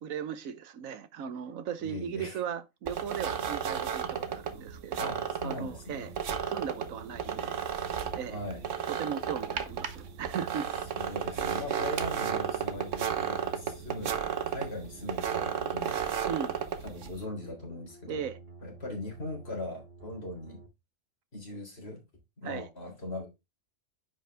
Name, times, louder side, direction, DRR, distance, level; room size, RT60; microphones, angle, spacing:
voice 1, 0.0-6.1 6.4-7.6 8.1-8.4 8.9-10.7 16.2-16.6 18.1-18.4 22.4-22.7, right 8 dB, 90° right, 1.3 m, -37 dB
voice 2, 1.8-2.4 5.0-6.1 8.3-8.6 10.9-14.1 14.5-16.3 16.8-18.3 18.6-20.6 21.3-22.0 22.4-23.3, left 1 dB, 50° left, 3.7 m, -40 dB
sound 1, 2.9-17.2, right 7 dB, 70° right, 1.3 m, -33 dB
sound 2, 5.7-20.7, right 2 dB, 45° right, 2.5 m, -52 dB
9.8 x 5.4 x 3.4 m
omnidirectional pair, 1.4 m